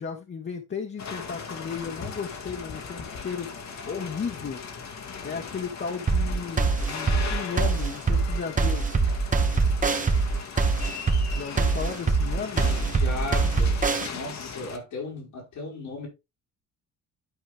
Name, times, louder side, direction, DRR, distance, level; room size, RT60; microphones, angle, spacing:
voice 1, 0.0-3.6 3.9-4.6 5.2-8.9 11.3-12.7, left 6 dB, 40° left, 1.4 m, -34 dB
sound 1, 1.0-14.8, left 5 dB, 65° left, 1.8 m, -38 dB
sound 2, 6.1-14.1, right 4 dB, 25° right, 1.3 m, -23 dB
voice 2, 12.9-13.8 14.1-16.1, left 3 dB, 85° left, 4.9 m, -36 dB
12.0 x 4.5 x 3.4 m
cardioid pair, 90°, 30 cm